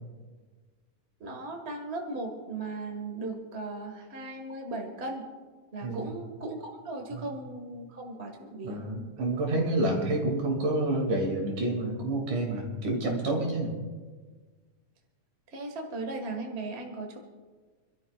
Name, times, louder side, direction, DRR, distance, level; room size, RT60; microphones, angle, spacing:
voice 1, 1.2-5.3 5.7-8.9 15.5-17.2, right 2 dB, 30° right, 3 dB, 1.1 m, -37 dB
voice 2, 5.8-6.2 7.1-7.3 8.6-13.7, right 2 dB, 70° right, 0 dB, 3.9 m, -29 dB
27.5 x 12.5 x 2.4 m, 1.4 s
omnidirectional pair, 3.6 m